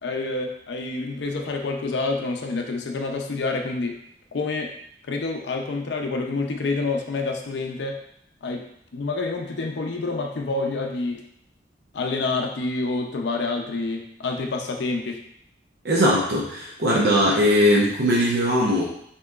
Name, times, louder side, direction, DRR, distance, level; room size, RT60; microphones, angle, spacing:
voice 1, 0.0-4.0 4.3-4.7 5.1-8.0 8.4-8.7 8.9-11.2 11.9-15.2, left 3 dB, 75° left, 3 dB, 0.5 m, -27 dB
voice 2, 15.8-18.8, equal, 65° right, -5 dB, 0.7 m, -20 dB
5.8 x 2.9 x 2.3 m, 0.70 s
head